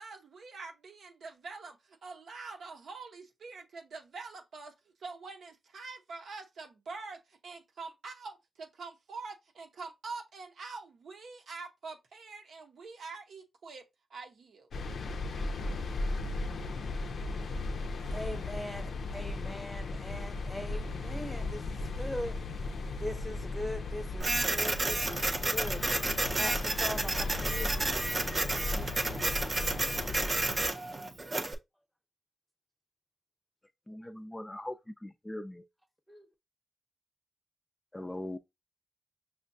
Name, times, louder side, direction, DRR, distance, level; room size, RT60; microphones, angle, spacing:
voice 1, 0.0-4.7 5.0-14.7, right 4 dB, 75° right, 0.7 m, -45 dB
sound 1, 14.7-30.7, left 2 dB, 75° left, 0.5 m, -36 dB
voice 2, 18.1-22.4 22.9-25.9 26.3-27.8 36.1-36.3, left 1 dB, ahead, 0.8 m, -40 dB
Printer, 24.2-31.5, right 2 dB, 35° right, 0.5 m, -31 dB
voice 3, 33.9-34.7 35.0-35.6 37.9-38.4, left 1 dB, 15° left, 0.3 m, -40 dB
5.6 x 2.2 x 2.6 m
cardioid pair, 85°, 0 cm